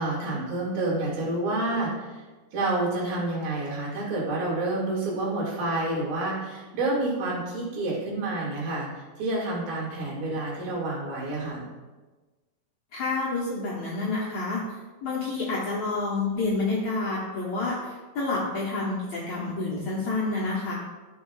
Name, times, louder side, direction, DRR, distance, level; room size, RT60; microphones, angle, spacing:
voice 1, 0.0-2.2 2.5-8.9 9.2-11.6, right 2 dB, 75° right, -5 dB, 4.0 m, -28 dB
voice 2, 12.9-14.6 15.0-20.7, left 3 dB, 65° left, -5 dB, 1.8 m, -28 dB
12.0 x 6.4 x 2.4 m, 1.3 s
omnidirectional pair, 4.3 m